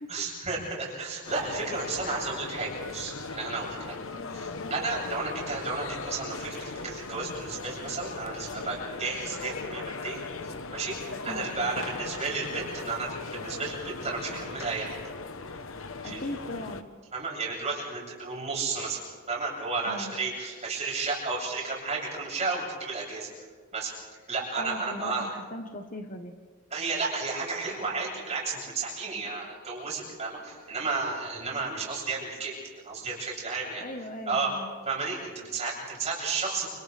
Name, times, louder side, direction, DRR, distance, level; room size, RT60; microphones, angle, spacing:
voice 1, 0.1-4.0 4.3-15.0 16.0-16.2 17.1-19.0 19.3-23.3 23.7-23.9 24.3-25.3 26.7-32.6 32.8-33.8 34.3-34.5 34.8-36.7, right 4 dB, 30° right, -4 dB, 7.9 m, -33 dB
sound 1, 1.3-16.8, left 3 dB, 65° left, 1.1 m, -38 dB
voice 2, 2.0-2.4 11.3-12.0 16.0-16.8 19.9-20.1 24.6-26.4 33.8-34.7, left 1 dB, 40° left, 5 dB, 1.3 m, -39 dB
29.5 x 28.5 x 3.5 m, 1.5 s
head